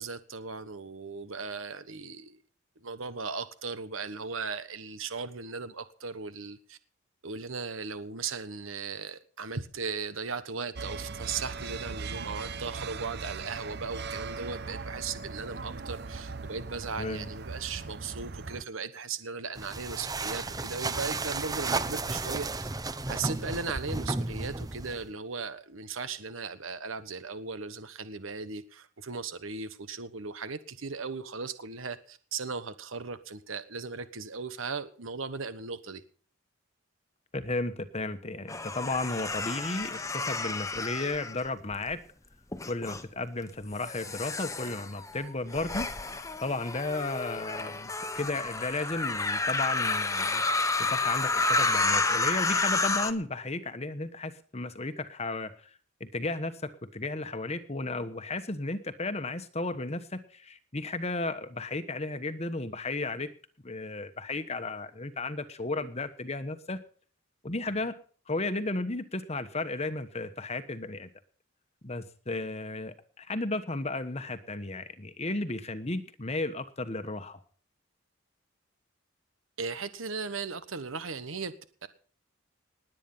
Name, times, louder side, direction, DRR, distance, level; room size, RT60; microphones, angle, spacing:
voice 1, 0.0-2.4 2.8-6.8 7.2-22.7 23.1-36.0 79.6-81.5 81.8-81.9, right 4 dB, 75° right, 12 dB, 1.2 m, -37 dB
sound 1, 10.8-18.6, right 4 dB, 50° right, 0.9 m, -39 dB
voice 2, 17.0-17.3 37.3-42.0 42.7-45.9 46.1-50.4 50.8-55.7 56.0-63.3 63.6-66.8 67.4-67.9 68.3-71.1 71.8-77.4, left 2 dB, 30° left, 10 dB, 1.1 m, -34 dB
sound 2, 19.5-25.1, right 3 dB, 20° right, 0.7 m, -33 dB
sound 3, 38.5-41.9 42.5-43.0 43.7-53.1, left 3 dB, 15° left, 1.1 m, -30 dB
19.5 x 9.1 x 5.5 m, 0.43 s
head